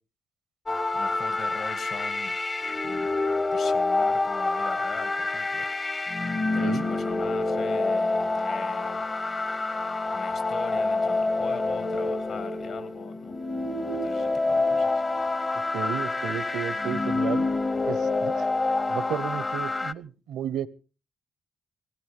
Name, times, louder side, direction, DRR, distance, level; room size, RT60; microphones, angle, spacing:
sound 1, 0.7-19.9, left 3 dB, 30° left, 0.7 m, -27 dB
voice 1, 0.9-2.3 2.8-3.1 3.5-5.7 6.5-9.0 10.1-13.4 13.9-15.0, left 5 dB, 70° left, 10 dB, 2.4 m, -41 dB
voice 2, 15.7-17.5 17.9-18.5 18.9-20.7, right 9 dB, 85° right, 18 dB, 0.7 m, -33 dB
18.5 x 16.5 x 3.6 m, 0.34 s
cardioid pair, 75°, 0 cm